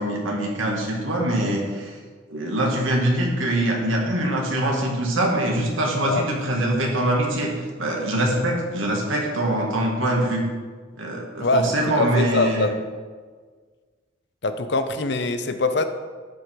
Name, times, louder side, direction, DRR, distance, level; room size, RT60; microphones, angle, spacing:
voice 1, 0.0-2.0 2.3-10.5 10.9-12.7, right 1 dB, 80° right, -1 dB, 1.9 m, -23 dB
voice 2, 11.4-12.7 14.4-15.8, left 2 dB, 55° left, 9 dB, 0.6 m, -23 dB
12.5 x 5.1 x 4.6 m, 1.5 s
head